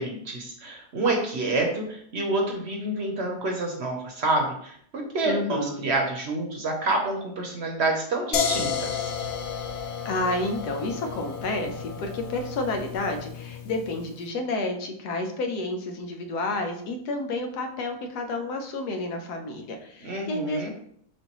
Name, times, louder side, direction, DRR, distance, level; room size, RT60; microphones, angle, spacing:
voice 1, 0.0-9.1 20.0-20.7, right 2 dB, 50° right, 1 dB, 0.9 m, -28 dB
voice 2, 5.3-5.8 10.0-20.7, left 2 dB, 90° left, 5 dB, 1.3 m, -30 dB
sound 1, 8.3-14.1, left 7 dB, 65° left, 0.7 m, -32 dB
6.2 x 2.6 x 2.9 m, 0.66 s
omnidirectional pair, 1.6 m